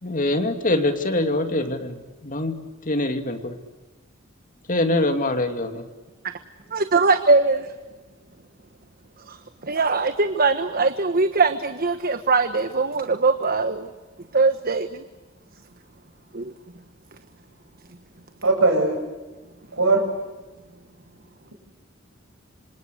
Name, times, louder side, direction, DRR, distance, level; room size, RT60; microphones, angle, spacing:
voice 1, 0.0-2.6 2.9-3.6 4.7-5.8, left 2 dB, 40° left, 7 dB, 2.6 m, -24 dB
voice 2, 6.7-7.7 9.3-9.4 9.6-13.9 14.3-15.0 16.3-16.5, right 3 dB, 45° right, 9 dB, 1.2 m, -21 dB
voice 3, 18.4-19.0 19.7-20.1, right 3 dB, 75° right, 5 dB, 7.7 m, -19 dB
27.0 x 26.5 x 8.2 m, 1.2 s
head